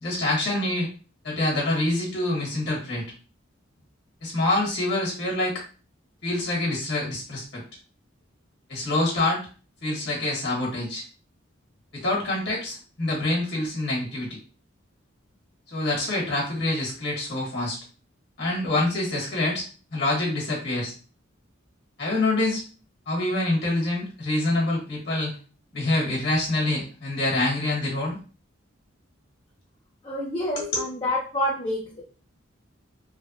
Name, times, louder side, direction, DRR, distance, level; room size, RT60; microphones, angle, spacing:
voice 1, 0.0-0.9 1.2-3.0 4.2-5.6 6.2-7.6 8.7-9.4 9.8-11.0 11.9-14.4 15.7-17.8 18.4-20.9 22.0-22.6 23.1-25.3 25.7-28.2 30.6-30.8, left 2 dB, 55° left, -4 dB, 1.5 m, -26 dB
voice 2, 30.0-32.0, left 1 dB, 25° left, -5 dB, 0.6 m, -28 dB
3.2 x 2.2 x 2.7 m, 0.38 s
head